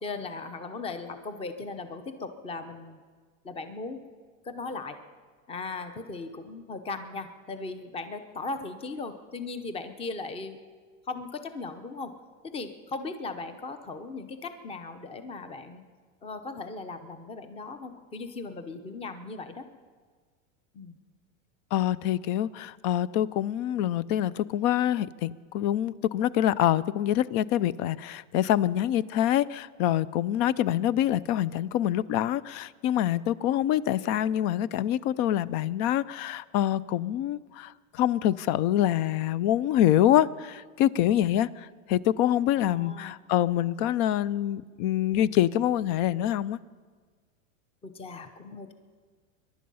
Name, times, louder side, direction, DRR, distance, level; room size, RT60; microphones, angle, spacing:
voice 1, 0.0-3.0 3.4-4.0 4.4-5.0 5.5-10.6 11.1-12.1 12.5-15.8 16.2-19.7 20.7-21.0 34.0-34.2 42.6-43.1 47.8-48.7, left 3 dB, 15° left, 10 dB, 0.8 m, -38 dB
voice 2, 21.7-46.6, left 12 dB, 45° left, 20 dB, 0.5 m, -25 dB
23.0 x 11.5 x 5.5 m, 1.5 s
supercardioid pair, 145°, 38 cm